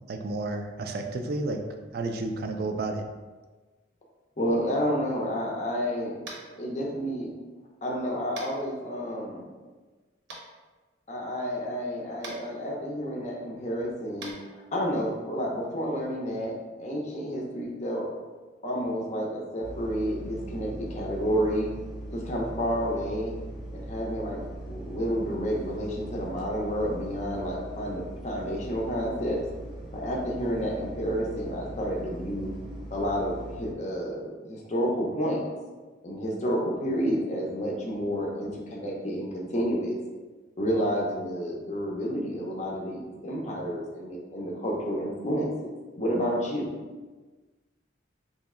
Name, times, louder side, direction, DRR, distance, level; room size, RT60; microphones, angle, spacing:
voice 1, 0.1-1.6 1.9-3.0, right 2 dB, 50° right, 5 dB, 0.3 m, -31 dB
voice 2, 4.4-6.2 6.6-7.3 7.8-9.5 11.1-16.5 16.8-18.1 18.6-21.7 22.1-23.3 23.7-29.4 29.9-32.5 32.9-35.4 36.0-40.0 40.6-46.7, equal, 35° left, -2 dB, 0.6 m, -30 dB
Tap, 6.2-6.5 8.3-8.5 10.3-10.4 12.2-12.4 14.2-14.3, right 3 dB, 65° right, 0.8 m, -40 dB
sound 1, 19.6-33.7, right 1 dB, 5° right, 0.8 m, -40 dB
3.1 x 2.8 x 3.6 m, 1.3 s
head